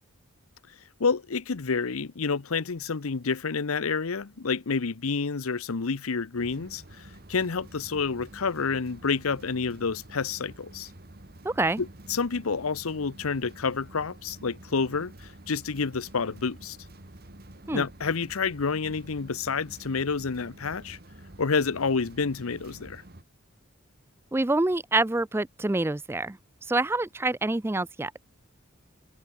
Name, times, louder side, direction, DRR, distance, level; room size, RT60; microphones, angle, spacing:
voice 1, 1.0-10.9 11.8-16.8 17.7-21.0 21.4-23.0, left 5 dB, 85° left, 0.8 m, -29 dB
sound 1, 6.4-23.2, right 1 dB, 45° right, 1.9 m, -49 dB
voice 2, 11.4-11.8 17.7-17.8 24.3-26.4 26.7-28.2, right 2 dB, 10° right, 0.4 m, -26 dB
head